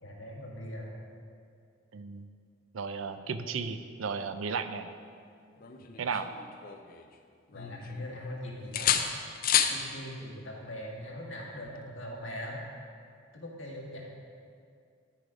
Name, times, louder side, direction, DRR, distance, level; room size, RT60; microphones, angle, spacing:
voice 1, 0.0-0.9 7.5-9.0 9.7-12.6 13.3-14.0, left 1 dB, 80° left, -3 dB, 1.8 m, -41 dB
voice 2, 1.9-2.3 2.7-4.9 6.0-6.3, right 5 dB, 85° right, 10 dB, 0.5 m, -34 dB
sound 1, 5.6-7.1 7.5-8.3 8.7-9.8 11.7-11.9, left 9 dB, 45° left, 0.5 m, -30 dB
12.0 x 5.0 x 4.9 m, 2.3 s
head